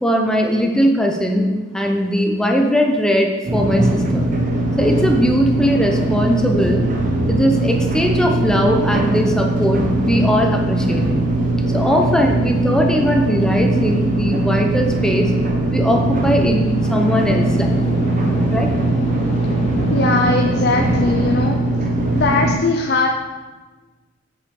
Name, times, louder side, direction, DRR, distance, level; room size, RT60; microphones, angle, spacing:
voice 1, 0.0-4.3 4.8-6.8 7.2-11.2 11.7-15.3 15.7-17.8 18.5-18.7, equal, 5° left, 2 dB, 0.9 m, -19 dB
sound 1, 3.5-22.5, right 2 dB, 45° right, 1.2 m, -20 dB
sound 2, 16.1-21.5, left 1 dB, 35° left, 1.5 m, -27 dB
voice 2, 19.9-21.6 22.1-23.1, left 3 dB, 55° left, 2 dB, 0.6 m, -19 dB
7.5 x 6.8 x 4.8 m, 1.3 s
head